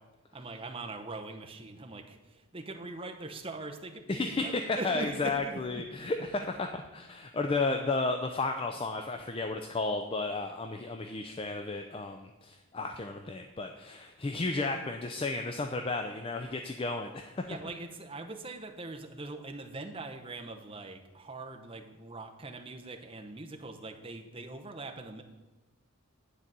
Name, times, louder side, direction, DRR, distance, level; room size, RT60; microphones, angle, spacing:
voice 1, 0.3-5.8 17.5-25.2, right 2 dB, 25° right, 4 dB, 0.7 m, -42 dB
voice 2, 4.1-6.7 6.9-17.5, left 3 dB, 25° left, 5 dB, 0.4 m, -33 dB
9.9 x 4.0 x 7.4 m, 1.2 s
head